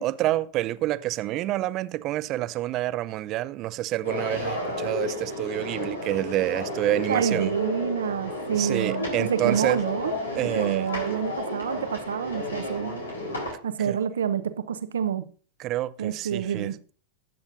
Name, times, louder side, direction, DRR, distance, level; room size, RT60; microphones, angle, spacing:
voice 1, 0.0-7.5 8.6-9.8 10.4-10.9 13.9-14.0 15.6-16.7, right 15 dB, 40° right, 0.5 m, -28 dB
sound 1, 4.0-13.5, left 2 dB, 85° left, 4.0 m, -32 dB
voice 2, 7.1-10.2 10.6-13.0 13.6-15.3 16.0-16.8, right 8 dB, 75° right, 0.8 m, -28 dB
19.0 x 7.3 x 2.6 m
figure-of-eight pair, 95°, 0 cm